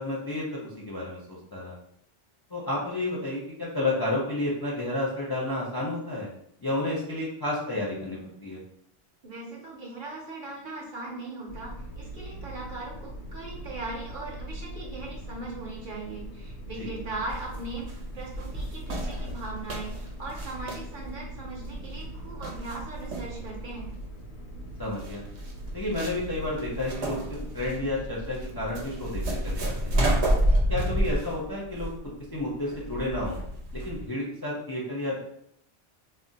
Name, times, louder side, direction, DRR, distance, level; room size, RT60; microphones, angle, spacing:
voice 1, 0.0-1.8 2.5-6.3 6.6-8.6 16.8-16.9 24.8-25.2 25.7-30.0 30.7-31.9 32.3-33.4 33.7-35.2, left 2 dB, 35° left, -5 dB, 0.4 m, -31 dB
voice 2, 9.2-17.9 18.1-23.9, right 2 dB, 55° right, -2 dB, 0.8 m, -39 dB
sound 1, 11.5-30.0, right 1 dB, 90° left, 0.9 m, -41 dB
sound 2, 17.3-34.1, right 1 dB, 80° right, 1.0 m, -30 dB
2.4 x 2.1 x 3.9 m, 0.72 s
omnidirectional pair, 1.1 m